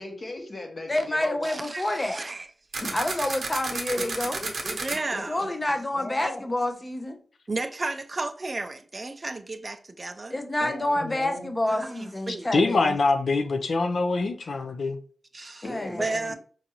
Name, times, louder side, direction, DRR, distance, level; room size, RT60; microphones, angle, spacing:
voice 1, 0.0-1.6 2.8-3.3 4.0-4.1 4.4-4.8 5.1-5.5 5.9-6.4 10.6-11.5 15.6-16.4, left 2 dB, 45° left, 0.9 m, -38 dB
voice 2, 0.9-2.2 2.9-4.4 5.3-7.2 10.3-12.9 15.7-16.3, left 1 dB, 25° left, 0.5 m, -28 dB
voice 3, 1.4-2.5 4.8-5.5 7.5-10.3 11.7-12.5 15.3-15.6 16.0-16.4, right 2 dB, 40° right, 0.3 m, -33 dB
sound 1, 2.7-5.0, right 3 dB, 80° right, 0.7 m, -31 dB
voice 4, 12.5-15.0, left 3 dB, 70° left, 0.4 m, -24 dB
4.6 x 2.6 x 2.8 m
wide cardioid pair, 85°, 0 cm